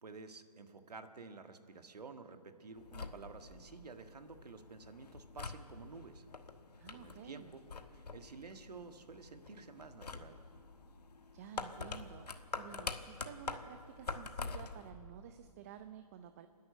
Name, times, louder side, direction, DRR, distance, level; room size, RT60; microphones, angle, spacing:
voice 1, 0.0-6.2 6.9-7.6 7.9-10.4, right 4 dB, 80° right, 7 dB, 1.6 m, -51 dB
sound 1, 2.8-14.9, left 4 dB, 80° left, 1.4 m, -46 dB
voice 2, 6.8-7.5 11.3-16.5, right 9 dB, 25° right, 9 dB, 0.5 m, -52 dB
28.0 x 10.5 x 9.1 m, 2.4 s
hypercardioid pair, 150°, 20 cm